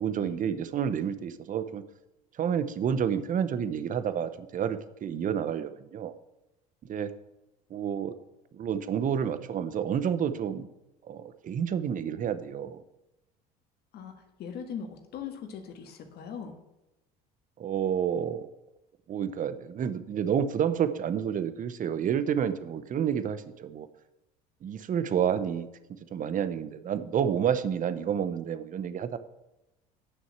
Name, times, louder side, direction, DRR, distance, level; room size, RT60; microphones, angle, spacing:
voice 1, 0.0-1.8 2.4-6.1 6.9-7.1 7.7-8.2 8.5-10.7 11.0-12.8 17.6-18.5 19.1-23.9 24.6-25.7 26.1-29.2, right 8 dB, 40° right, 13 dB, 0.9 m, -29 dB
voice 2, 13.9-16.5, left 7 dB, 55° left, 4 dB, 1.7 m, -40 dB
9.9 x 6.2 x 7.4 m, 0.93 s
supercardioid pair, 85°, 20 cm